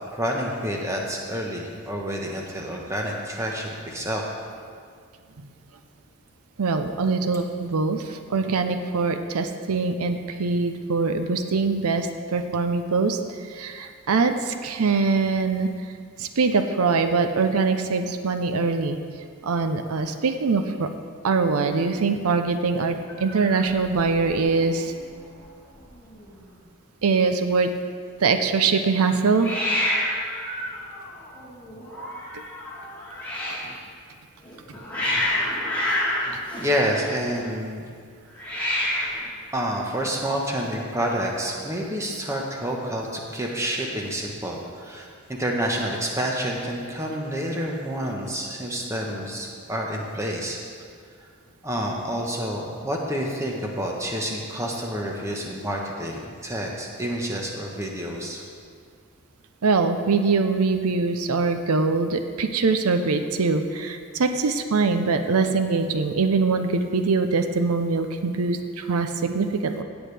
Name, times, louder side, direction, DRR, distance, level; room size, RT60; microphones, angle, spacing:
voice 1, 0.1-4.2 36.5-37.8 39.5-50.6 51.6-58.4, equal, 15° right, -1 dB, 1.1 m, -28 dB
voice 2, 6.6-13.2 13.5-15.7 16.2-19.0 19.4-20.9 21.2-24.9 27.0-27.7 28.2-29.5 59.6-69.8, right 4 dB, 90° right, 8 dB, 0.6 m, -23 dB
Hiss, 23.1-24.4 24.7-25.1 25.4-25.5 25.7-26.4 29.4-33.7 34.4-37.4 38.3-39.3, left 1 dB, 10° left, 2.1 m, -29 dB
16.5 x 8.2 x 3.4 m, 2.1 s
head